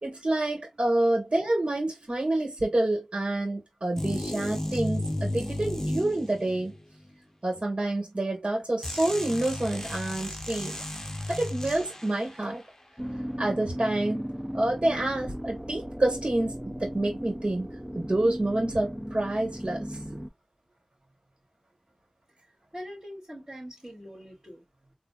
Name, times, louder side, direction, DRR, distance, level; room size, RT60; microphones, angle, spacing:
voice 1, 0.0-6.7 7.4-10.8 11.3-12.6 13.4-14.3 14.5-17.7 17.9-20.0, right 1 dB, 60° right, 1.6 m, -28 dB
sound 1, 4.0-6.8 8.8-12.3, left 1 dB, 25° left, 0.8 m, -33 dB
sound 2, 13.0-20.3, equal, 10° right, 0.5 m, -36 dB
voice 2, 22.7-25.0, equal, 30° right, 2.5 m, -43 dB
4.0 x 2.6 x 2.4 m
wide cardioid pair, 55°, 2 cm